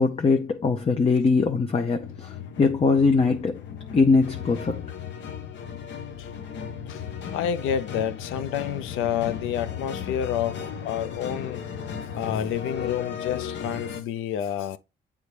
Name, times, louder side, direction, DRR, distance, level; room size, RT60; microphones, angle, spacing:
voice 1, 0.0-3.6 3.9-4.9, left 4 dB, 30° left, 0.6 m, -22 dB
sound 1, 2.0-14.0, left 7 dB, 65° left, 0.9 m, -35 dB
voice 2, 7.3-11.7 12.1-14.8, left 9 dB, 90° left, 0.5 m, -29 dB
8.1 x 3.5 x 3.3 m
cardioid pair, 90°, 20 cm